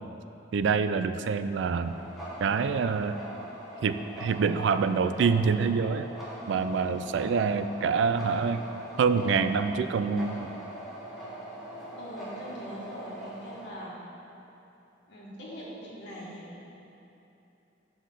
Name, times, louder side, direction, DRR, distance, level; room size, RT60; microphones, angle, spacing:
voice 1, 0.5-1.9 2.4-3.2 3.8-6.1 6.5-8.6 9.0-10.5, right 5 dB, 65° right, 11 dB, 0.3 m, -26 dB
sound 1, 1.8-13.7, right 1 dB, ahead, 1.3 m, -42 dB
voice 2, 11.9-14.1 15.1-16.7, equal, 60° left, -7 dB, 1.4 m, -42 dB
5.7 x 5.1 x 6.6 m, 2.9 s
head